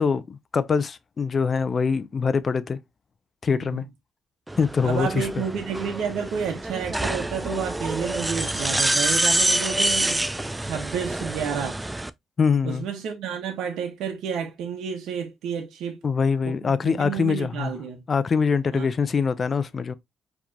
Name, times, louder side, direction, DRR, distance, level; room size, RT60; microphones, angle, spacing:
voice 1, 0.0-2.8 3.4-3.8 4.6-5.3 12.4-12.8 16.0-17.7 18.1-19.9, left 5 dB, 40° left, 0.6 m, -23 dB
sound 1, 4.5-12.1, right 1 dB, 10° right, 0.4 m, -26 dB
voice 2, 4.8-10.3 10.6-11.8 12.6-16.0 16.4-18.0 18.7-18.9, right 7 dB, 85° right, 1.2 m, -30 dB
4.8 x 3.4 x 2.9 m
cardioid pair, 90°, 0 cm